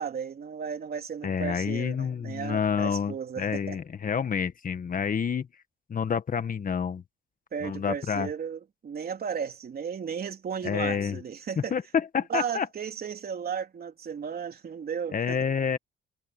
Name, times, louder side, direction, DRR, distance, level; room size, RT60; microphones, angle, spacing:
voice 1, 0.0-3.8 7.5-11.7 12.3-15.4, right 7 dB, 50° right, 3.6 m, -35 dB
voice 2, 1.2-5.5 5.9-7.0 7.6-8.3 10.6-11.2 11.6-12.7 15.1-15.8, left 6 dB, 45° left, 1.6 m, -28 dB
cardioid pair, 90°, 20 cm